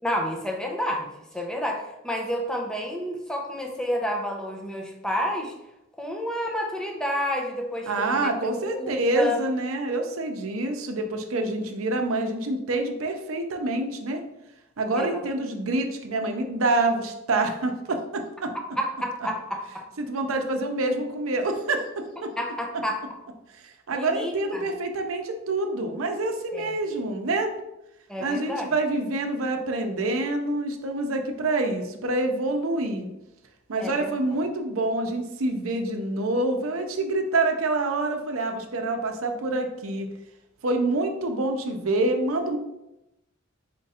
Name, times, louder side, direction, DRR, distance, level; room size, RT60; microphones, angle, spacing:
voice 1, 0.0-5.5 6.0-8.3 8.6-9.4 14.9-15.2 18.8-19.9 22.4-23.0 23.9-24.7 26.5-26.8 28.1-28.7 33.8-34.2, equal, 5° left, 1 dB, 0.6 m, -30 dB
voice 2, 7.9-14.2 14.8-18.5 20.0-22.3 23.6-27.5 28.2-33.1 33.7-40.1 40.6-42.6, right 2 dB, 85° right, 5 dB, 0.6 m, -27 dB
4.4 x 2.5 x 4.1 m, 0.91 s
head